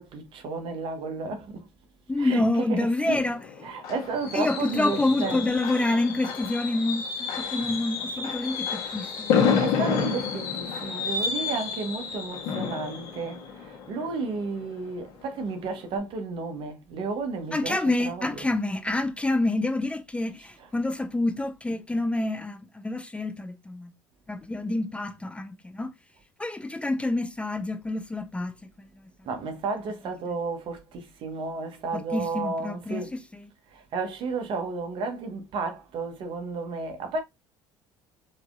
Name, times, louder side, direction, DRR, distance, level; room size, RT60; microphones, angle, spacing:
voice 1, 0.0-1.6 2.2-2.4 2.7-3.2 3.6-5.4 9.6-17.8 18.0-18.3 29.3-33.1 33.7-37.2, right 4 dB, 60° right, 1.1 m, -32 dB
voice 2, 2.1-3.7 4.3-9.4 17.5-23.9 24.3-25.9 26.4-29.1 31.9-33.5, left 2 dB, 10° left, 0.5 m, -28 dB
Fireworks, 3.2-14.9 15.3-15.5 15.8-15.9, left 6 dB, 75° left, 1.4 m, -30 dB
4.8 x 2.9 x 2.3 m
supercardioid pair, 80°, 10 cm